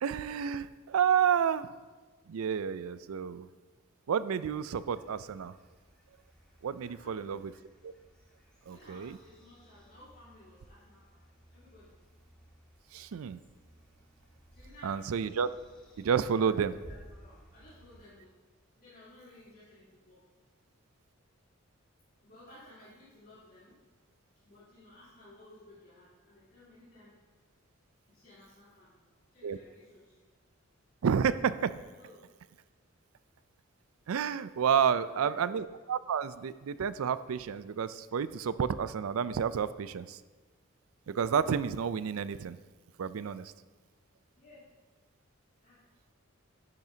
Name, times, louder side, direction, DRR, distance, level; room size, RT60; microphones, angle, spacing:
voice 1, 0.0-1.7 2.3-3.5 4.1-5.5 6.6-7.5 7.8-7.9 8.7-9.2 12.9-13.4 14.8-15.5 16.0-16.7 29.4-29.6 31.0-31.7 34.1-40.2 41.1-42.6 43.0-43.5, right 7 dB, 85° right, 15 dB, 0.4 m, -30 dB
sound 1, 4.6-18.0, equal, 5° left, 1.8 m, -58 dB
voice 2, 6.8-7.3 8.7-11.2 11.5-11.9 14.5-15.0 16.4-18.4 18.8-20.3 22.2-23.8 24.4-27.2 28.1-28.9 29.3-30.2 31.9-32.3 34.8-35.4 44.4-44.7 45.6-45.8, left 1 dB, 45° left, -13 dB, 3.5 m, -56 dB
10.5 x 10.5 x 2.8 m, 1.3 s
head